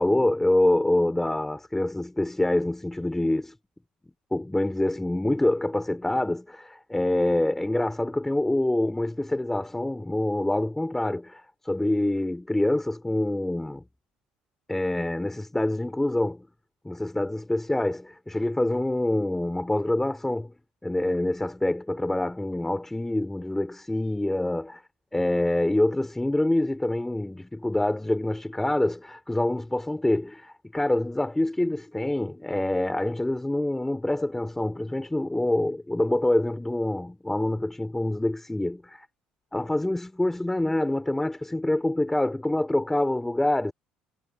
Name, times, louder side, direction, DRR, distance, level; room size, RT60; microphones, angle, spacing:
voice 1, 0.0-3.5 4.3-13.8 14.7-16.4 16.8-20.5 20.8-24.8 25.1-39.0 39.5-43.7, left 1 dB, 10° left, 5.0 m, -26 dB
supercardioid pair, 80°, 3 cm